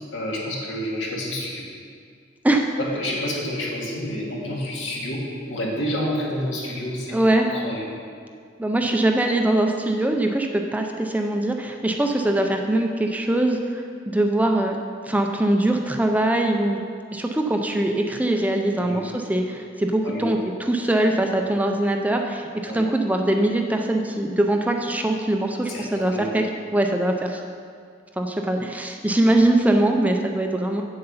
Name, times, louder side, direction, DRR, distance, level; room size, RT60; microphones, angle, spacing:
voice 1, 0.1-1.7 2.8-7.2 7.4-7.9 18.8-19.0 20.0-20.3 22.6-22.9 25.7-26.3, equal, 75° left, -4 dB, 2.1 m, -29 dB
voice 2, 7.1-7.5 8.6-14.8 15.0-16.8 17.1-26.4 26.7-27.4 28.2-30.8, right 1 dB, 10° right, 3 dB, 0.5 m, -22 dB
7.9 x 7.7 x 5.6 m, 2.2 s
head